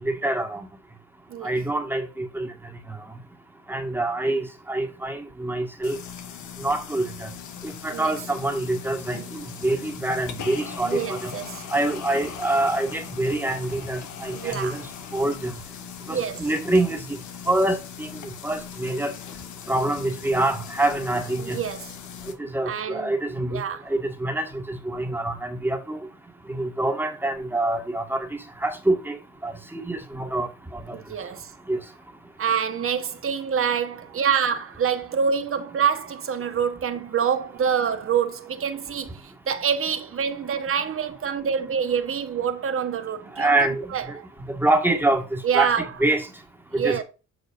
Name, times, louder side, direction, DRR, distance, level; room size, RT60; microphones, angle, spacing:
voice 1, 0.0-0.7 1.4-2.5 3.7-6.0 6.6-7.3 7.6-11.3 11.7-14.8 15.1-15.5 16.1-17.2 17.5-18.1 18.4-19.1 19.7-21.6 22.4-26.0 26.5-28.3 28.6-29.2 29.4-30.9 31.7-31.8 43.4-44.2 44.5-46.3 46.7-47.0, right 2 dB, 5° right, 1.7 m, -26 dB
sound 1, 5.8-22.3, left 8 dB, 80° left, 1.3 m, -39 dB
voice 2, 9.1-9.5 10.1-10.2 10.8-11.7 14.3-14.8 16.1-16.5 21.4-21.9 22.6-23.2 23.5-23.9 30.9-31.5 32.4-43.5 43.9-44.3 45.4-45.9 46.7-47.0, right 7 dB, 45° right, 1.2 m, -26 dB
7.8 x 6.0 x 2.5 m
cardioid pair, 90°, 30 cm